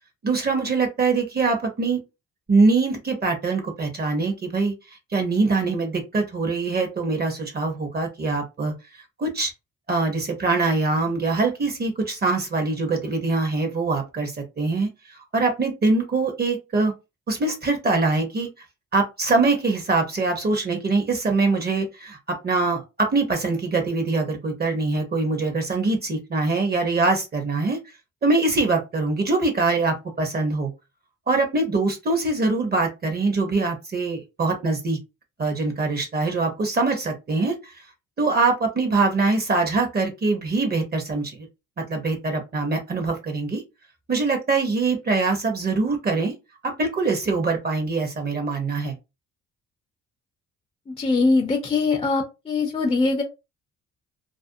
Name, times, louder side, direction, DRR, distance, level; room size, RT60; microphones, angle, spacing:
voice 1, 0.2-2.0 2.5-4.7 5.1-8.7 9.2-9.5 9.9-16.9 17.3-18.5 18.9-27.8 28.2-30.7 31.3-35.0 35.4-37.7 38.2-41.5 41.8-43.6 44.1-46.3 46.6-48.9, right 3 dB, 35° right, 4 dB, 0.7 m, -23 dB
voice 2, 50.9-53.2, left 3 dB, 20° left, 3 dB, 0.5 m, -22 dB
2.5 x 2.1 x 2.5 m, 0.26 s
cardioid pair, 90°, 30 cm